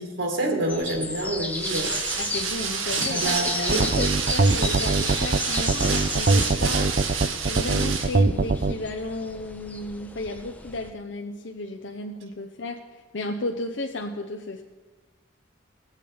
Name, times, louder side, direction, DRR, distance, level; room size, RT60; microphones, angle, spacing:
voice 1, 0.0-2.0 3.1-3.9, right 1 dB, 70° right, 3 dB, 2.3 m, -27 dB
sound 1, 0.7-10.9, left 2 dB, 10° left, 0.6 m, -34 dB
sound 2, 1.5-8.2, right 6 dB, 90° right, 1.4 m, -29 dB
voice 2, 2.2-6.9 7.5-14.6, left 2 dB, 65° left, 3 dB, 0.8 m, -33 dB
sound 3, 3.7-8.7, right 3 dB, 50° right, 0.5 m, -22 dB
20.0 x 7.5 x 5.1 m, 1.3 s
head